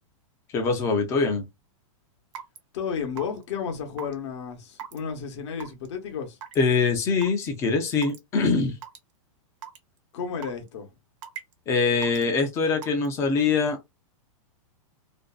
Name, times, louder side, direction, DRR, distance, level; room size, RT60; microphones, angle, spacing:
voice 1, 0.5-1.5 6.6-8.8 11.7-13.8, left 4 dB, 15° left, 0.5 m, -23 dB
Raindrop / Water tap faucet / Drip, 2.4-2.6 3.2-3.4 4.0-4.1 4.8-5.0 5.6-5.9 6.4-6.6 7.2-7.3 8.0-8.2 8.8-9.0 9.6-9.8 10.4-10.7 11.2-11.5 12.0-12.2 12.8-13.1, right 9 dB, 65° right, 0.8 m, -38 dB
voice 2, 2.7-6.4 10.1-10.9, left 6 dB, 55° left, 0.8 m, -32 dB
2.5 x 2.2 x 2.3 m
supercardioid pair, 165°, 18 cm